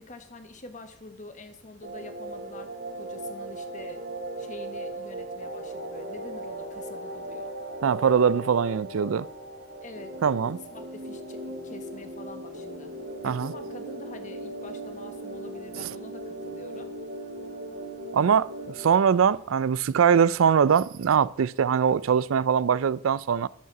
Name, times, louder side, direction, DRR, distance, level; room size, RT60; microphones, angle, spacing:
voice 1, 0.0-4.1 4.4-7.5 9.8-10.2 10.7-12.9 13.2-16.9, left 2 dB, 40° left, 1.3 m, -45 dB
sound 1, 1.8-18.9, right 1 dB, 55° right, 1.9 m, -38 dB
voice 2, 7.8-9.3 10.2-10.6 13.2-13.5 18.1-23.5, right 7 dB, 90° right, 0.4 m, -22 dB
11.0 x 7.5 x 5.9 m
head